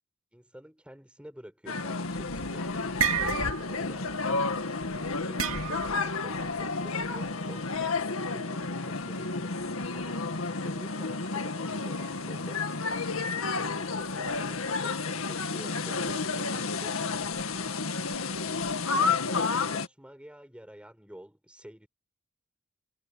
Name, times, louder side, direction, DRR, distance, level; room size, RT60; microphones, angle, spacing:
voice 1, 0.3-4.4 4.9-12.6 13.4-17.6 18.9-21.9, equal, 5° right, 5.5 m, -50 dB
sound 1, 1.7-19.9, left 4 dB, 85° left, 2.0 m, -31 dB
sound 2, 2.1-2.4 2.7-3.8 4.1-4.4 5.4-6.1, right 7 dB, 90° right, 2.8 m, -30 dB
head